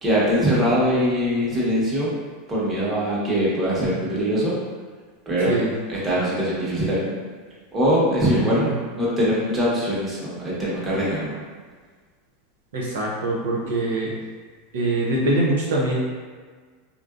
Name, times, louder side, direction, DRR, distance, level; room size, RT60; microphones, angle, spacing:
voice 1, 0.0-2.1 2.5-4.5 5.3-5.6 5.9-7.1 7.7-11.3, equal, 20° right, -7 dB, 1.1 m, -22 dB
voice 2, 12.7-14.1 14.7-15.9, right 2 dB, 90° right, -4 dB, 0.6 m, -23 dB
3.6 x 2.5 x 2.4 m, 1.5 s
supercardioid pair, 125°, 0 cm